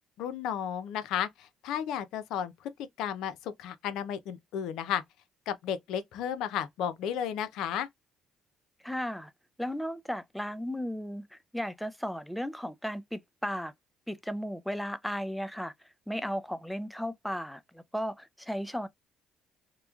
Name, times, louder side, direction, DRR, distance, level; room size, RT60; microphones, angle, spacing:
voice 1, 0.2-2.5 3.0-5.0 5.5-7.9, left 9 dB, 75° left, 0.5 m, -33 dB
voice 2, 8.8-9.3 9.6-13.7 14.1-15.7 16.1-18.9, equal, 5° left, 0.4 m, -35 dB
3.0 x 2.1 x 2.3 m
supercardioid pair, 75°, 0 cm